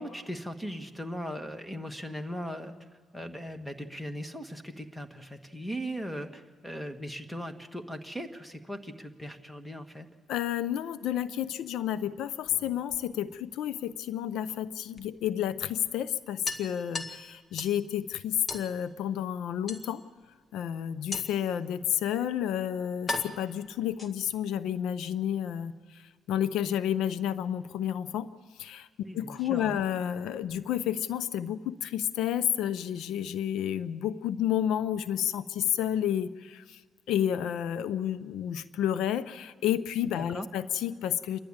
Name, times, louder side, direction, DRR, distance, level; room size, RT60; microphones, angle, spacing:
voice 1, 0.0-2.7 3.1-10.1 29.0-29.8 40.1-40.5, equal, 5° left, 6 dB, 1.7 m, -38 dB
voice 2, 10.3-20.0 20.5-28.3 28.5-28.9 29.1-36.8 37.1-41.4, left 10 dB, 85° left, 14 dB, 0.6 m, -30 dB
sound 1, 12.3-13.5 15.0-15.1 15.4-15.5 15.8-15.9 16.4-17.8 18.5-18.7 19.7-20.2 21.1-21.5 22.4-22.5 23.1-24.4, left 2 dB, 30° left, 1.8 m, -38 dB
28.5 x 11.5 x 8.8 m, 1.4 s
cardioid pair, 90°, 0 cm